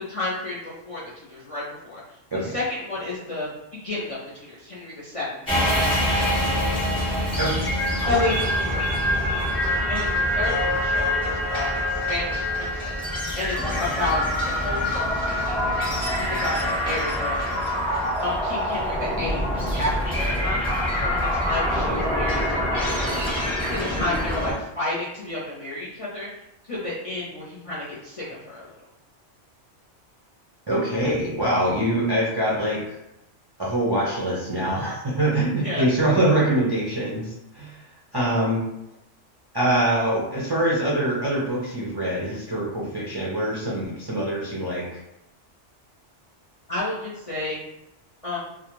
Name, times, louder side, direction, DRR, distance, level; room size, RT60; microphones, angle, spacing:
voice 1, 0.0-6.4 8.1-13.0 13.4-14.2 14.5-15.8 16.2-17.4 18.2-20.6 21.0-23.2 23.7-26.3 26.6-28.8 35.6-35.8 46.7-47.6 48.2-48.4, left 2 dB, 40° left, -8 dB, 0.5 m, -31 dB
sound 1, 5.5-24.5, left 1 dB, 5° left, 0.7 m, -25 dB
voice 2, 30.7-33.0 33.6-37.8 38.1-38.6 39.5-45.0, right 1 dB, 40° right, -7 dB, 0.3 m, -24 dB
2.3 x 2.2 x 3.0 m, 0.88 s
omnidirectional pair, 1.2 m